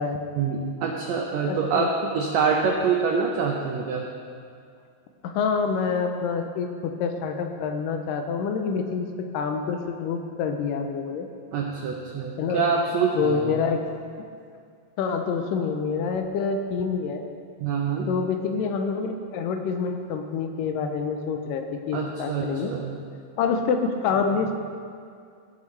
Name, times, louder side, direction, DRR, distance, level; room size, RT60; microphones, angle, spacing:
voice 1, 0.4-4.0 11.5-13.6 17.6-18.1 21.9-22.9, right 5 dB, 90° right, 1 dB, 1.5 m, -25 dB
voice 2, 1.5-1.9 5.2-11.3 12.4-12.6 13.2-13.8 14.2-14.3 15.0-17.2 18.1-22.7 23.4-24.5, left 5 dB, 80° left, 5 dB, 2.2 m, -27 dB
17.5 x 7.4 x 3.2 m, 2.2 s
omnidirectional pair, 4.1 m